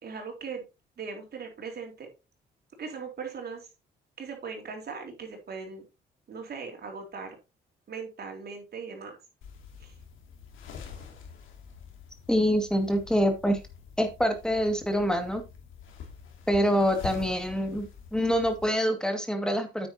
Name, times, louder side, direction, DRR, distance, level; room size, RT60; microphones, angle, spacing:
voice 1, 0.0-0.6 1.0-2.1 2.8-3.7 4.2-5.8 6.3-7.4 7.9-9.2 9.8-9.9, right 5 dB, 55° right, 2 dB, 4.0 m, -39 dB
sound 1, 9.4-18.7, left 6 dB, 85° left, 2.8 m, -46 dB
voice 2, 12.3-13.6 14.0-15.4 16.5-19.9, equal, 5° left, 5 dB, 2.3 m, -25 dB
9.2 x 8.9 x 2.9 m, 0.27 s
cardioid pair, 90°, 20 cm